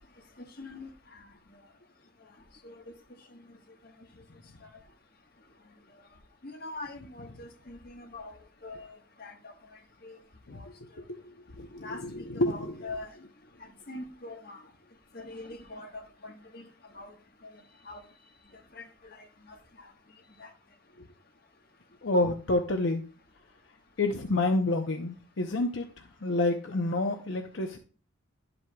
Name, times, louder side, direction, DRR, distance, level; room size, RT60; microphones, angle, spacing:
voice 1, 0.6-0.9 2.6-2.7 6.6-8.3 8.6-8.9 9.2-9.3 10.0-10.2 10.6-10.7 11.8-12.0 12.4-13.1 13.9-14.6 15.1-16.6 16.9-17.1 17.4-17.5 17.9-18.0 18.8-18.9, left 2 dB, 50° left, 1.4 m, -42 dB
voice 2, 11.1-12.7 22.0-23.0 24.0-25.9 26.2-27.8, left 2 dB, 65° left, 0.8 m, -29 dB
11.5 x 7.8 x 2.3 m
head